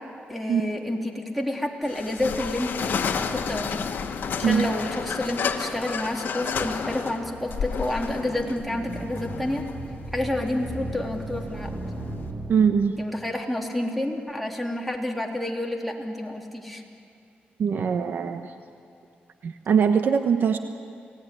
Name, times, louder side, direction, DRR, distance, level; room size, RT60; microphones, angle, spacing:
voice 1, 0.3-3.8 4.4-9.7 10.1-11.8 13.0-16.8, left 1 dB, ahead, -1 dB, 3.4 m, -29 dB
sound 1, 1.8-12.3, left 6 dB, 65° left, 1.6 m, -31 dB
sound 2, 6.8-13.1, right 1 dB, 40° right, 2.9 m, -37 dB
voice 2, 12.5-13.0 17.6-18.5 19.4-20.6, right 6 dB, 65° right, 7 dB, 1.1 m, -22 dB
28.5 x 18.5 x 10.0 m, 2.5 s
cardioid pair, 95°, 4 cm